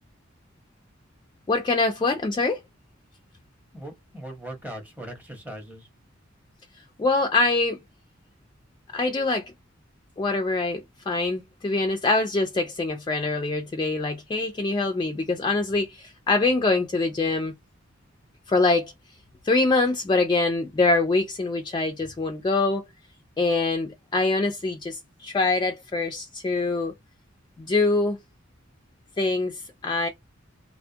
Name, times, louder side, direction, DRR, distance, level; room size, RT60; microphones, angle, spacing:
voice 1, 1.5-2.6 7.0-7.8 8.9-9.4 10.2-17.5 18.5-18.9 19.4-22.9 23.4-26.9 27.6-28.2 29.2-30.1, left 3 dB, 20° left, 0.3 m, -24 dB
voice 2, 3.7-5.9, right 1 dB, 10° right, 0.7 m, -39 dB
2.2 x 2.1 x 2.7 m
head